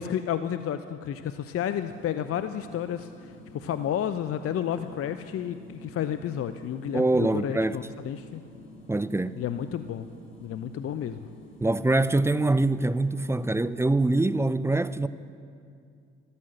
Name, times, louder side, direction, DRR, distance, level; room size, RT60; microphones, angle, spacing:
voice 1, 0.0-8.4 9.4-10.1 10.4-11.3, left 9 dB, 50° left, 0.6 m, -31 dB
sound 1, 1.6-13.6, left 1 dB, 65° left, 2.9 m, -49 dB
voice 2, 6.9-7.8 8.9-9.4 11.6-15.1, right 2 dB, 10° right, 0.5 m, -24 dB
13.0 x 12.5 x 6.6 m
hypercardioid pair, 55°, 30 cm